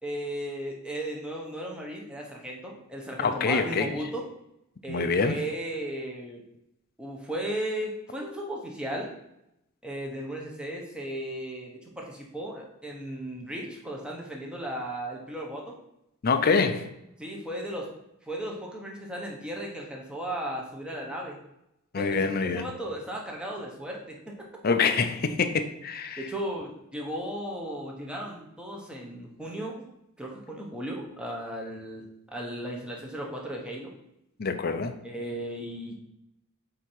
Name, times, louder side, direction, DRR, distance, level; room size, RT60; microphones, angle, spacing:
voice 1, 0.0-4.3 4.8-6.4 7.0-9.1 9.8-15.8 17.2-17.9 18.2-21.4 21.9-24.5 26.2-29.7 30.2-32.0 32.3-33.9 35.0-35.9, right 1 dB, 5° right, 1.0 m, -36 dB
voice 2, 3.2-3.9 4.9-5.4 16.2-16.9 21.9-22.7 24.6-26.2 34.4-34.9, left 4 dB, 45° left, 0.5 m, -25 dB
8.1 x 2.9 x 4.5 m
head